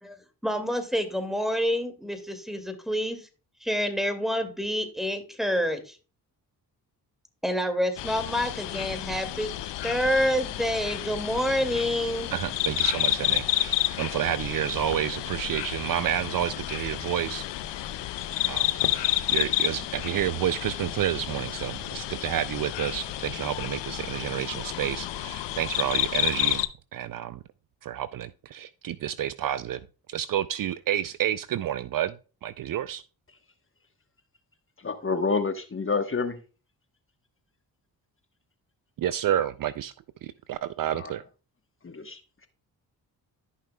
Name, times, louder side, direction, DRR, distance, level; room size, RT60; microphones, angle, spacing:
voice 1, 0.0-3.3 3.6-6.0 7.4-9.6 9.8-12.3, equal, ahead, 2.1 m, -28 dB
sound 1, 8.0-26.7, left 14 dB, 75° left, 0.7 m, -30 dB
voice 2, 12.3-17.5 18.5-26.6 26.9-27.4 27.8-29.8 30.1-32.2 32.4-33.0 39.0-39.9 40.2-41.2, right 11 dB, 50° right, 0.5 m, -30 dB
voice 3, 34.8-36.4 41.0-41.1 41.8-42.5, left 4 dB, 30° left, 1.2 m, -29 dB
13.5 x 5.7 x 2.2 m
supercardioid pair, 50°, 43 cm